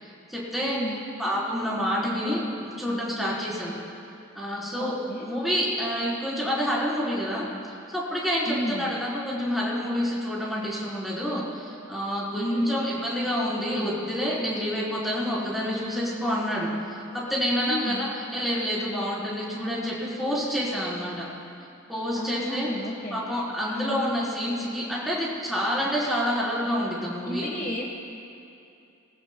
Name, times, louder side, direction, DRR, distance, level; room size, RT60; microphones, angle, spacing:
voice 1, 0.0-0.8 1.2-3.8 4.4-4.9 5.2-7.5 7.9-16.7 17.1-21.3 21.9-22.7 23.1-27.5, equal, ahead, -8 dB, 3.7 m, -28 dB
voice 2, 0.6-1.0 4.8-5.3 8.4-8.9 12.4-12.8 17.6-18.0 22.1-23.2 23.7-24.0 27.2-27.8, equal, 40° left, -1 dB, 1.2 m, -31 dB
23.5 x 20.0 x 2.2 m, 2.6 s
head